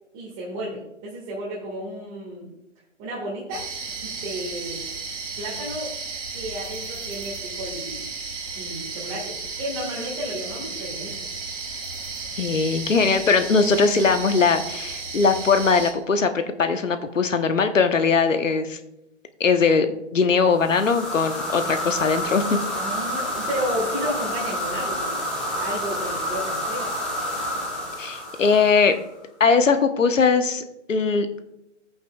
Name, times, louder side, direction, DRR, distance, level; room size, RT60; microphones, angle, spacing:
voice 1, 0.1-2.5 3.0-4.8 5.4-5.9 6.3-8.0 8.6-11.2 20.3-20.4 22.7-25.1 25.5-27.0, equal, 20° right, -5 dB, 1.9 m, -32 dB
sound 1, 3.5-15.9, right 4 dB, 45° right, 2.5 m, -34 dB
voice 2, 12.4-18.8 19.4-19.9 20.1-22.6 28.0-29.0 29.4-30.6 30.9-31.3, left 5 dB, 80° left, 8 dB, 1.1 m, -20 dB
sound 2, 20.5-29.1, equal, ahead, 0.5 m, -29 dB
15.0 x 8.5 x 2.4 m, 0.88 s
hypercardioid pair, 150°, 38 cm